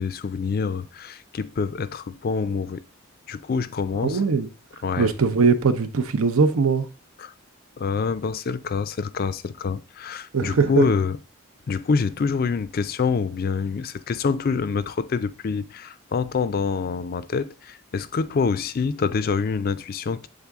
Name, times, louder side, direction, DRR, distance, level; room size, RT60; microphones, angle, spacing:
voice 1, 0.0-2.8 3.3-4.2 4.8-5.1 7.2-7.3 7.8-11.2 11.7-20.3, left 5 dB, 45° left, 0.3 m, -26 dB
voice 2, 4.0-4.5 5.0-6.9 10.3-10.9, right 5 dB, 80° right, 0.6 m, -20 dB
7.4 x 3.7 x 3.5 m
head